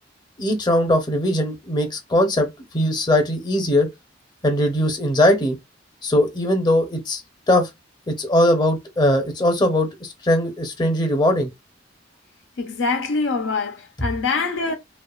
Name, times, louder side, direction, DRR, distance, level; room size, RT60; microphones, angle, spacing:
voice 1, 0.4-2.5 2.7-3.9 4.4-5.6 6.0-7.2 7.5-7.7 8.1-11.5, left 1 dB, 25° left, 0.7 m, -20 dB
voice 2, 12.6-14.8, left 4 dB, 80° left, 0.6 m, -24 dB
2.8 x 2.3 x 2.3 m
head